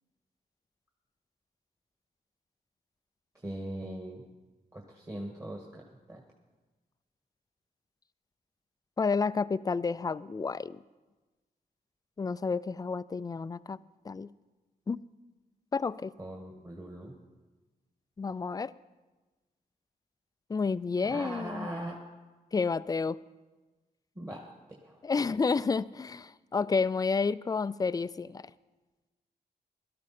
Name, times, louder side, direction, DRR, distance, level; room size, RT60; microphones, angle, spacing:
voice 1, 3.4-4.2 4.7-6.2 16.2-17.1 21.0-22.0 24.1-24.4 24.7-25.0, right 1 dB, 20° right, -1 dB, 1.7 m, -40 dB
voice 2, 9.0-10.8 12.2-13.8 14.1-14.3 14.9-15.0 15.7-16.1 18.2-18.7 20.5-21.7 22.5-23.2 25.0-28.4, left 4 dB, 20° left, 17 dB, 0.3 m, -30 dB
17.0 x 13.0 x 4.3 m, 1.2 s
wide cardioid pair, 100°, 17 cm